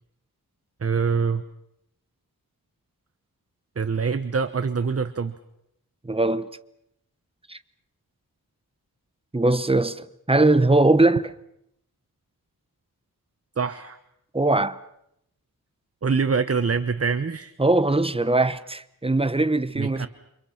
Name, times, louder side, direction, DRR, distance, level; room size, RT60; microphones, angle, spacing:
voice 1, 0.8-1.4 3.8-5.3 13.6-14.0 16.0-17.5 19.8-20.1, right 5 dB, 40° right, 1.0 m, -24 dB
voice 2, 6.0-6.5 7.5-7.6 9.3-11.3 14.3-14.8 17.6-20.1, right 2 dB, 15° right, 1.0 m, -21 dB
29.0 x 26.0 x 5.8 m
wide cardioid pair, 110°, 37 cm